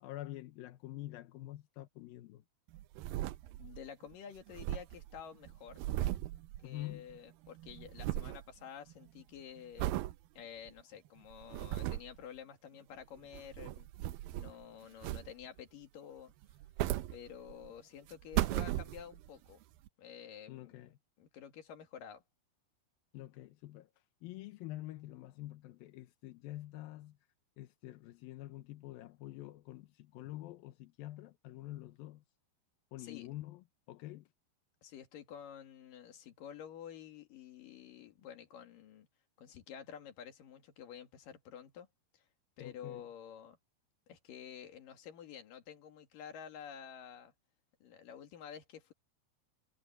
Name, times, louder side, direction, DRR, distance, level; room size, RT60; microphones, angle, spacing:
voice 1, 0.0-2.4 6.6-7.1 20.5-20.9 23.1-23.9 24.2-27.2 27.6-32.2 32.9-34.3 42.6-43.0, left 15 dB, 70° left, 2.4 m, -47 dB
sound 1, 2.7-4.1 4.4-7.2 7.4-8.5 8.9-9.2 9.8-10.2 10.7-10.8 11.3-12.2 13.2-14.6 15.0-15.6 16.4-17.7 18.1-19.3 19.9-20.0, right 15 dB, 85° right, 2.2 m, -37 dB
voice 2, 3.6-5.9 6.6-9.9 10.4-13.9 14.3-16.3 17.1-19.6 20.0-20.9 21.2-22.2 33.0-33.3 34.8-39.1 39.4-41.9 42.1-42.3 42.6-43.6 44.1-47.3 47.8-48.9, left 8 dB, 55° left, 3.5 m, -50 dB
omnidirectional pair, 4.9 m